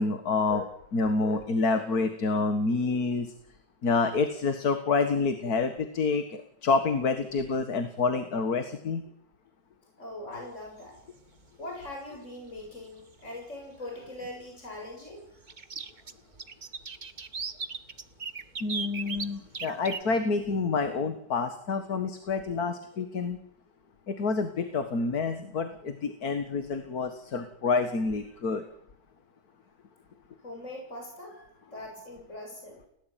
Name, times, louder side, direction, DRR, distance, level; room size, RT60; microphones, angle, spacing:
voice 1, 0.0-3.3 3.8-9.0 18.6-23.4 24.1-28.6, left 4 dB, 60° left, 8 dB, 2.2 m, -28 dB
voice 2, 10.0-11.0 11.6-15.2 30.4-32.8, left 1 dB, 45° left, 0 dB, 7.9 m, -41 dB
sound 1, 10.7-11.0 12.6-12.7 13.1-13.2 15.5-20.0, right 5 dB, 30° right, 1.1 m, -36 dB
29.5 x 17.5 x 9.2 m, 0.74 s
omnidirectional pair, 1.8 m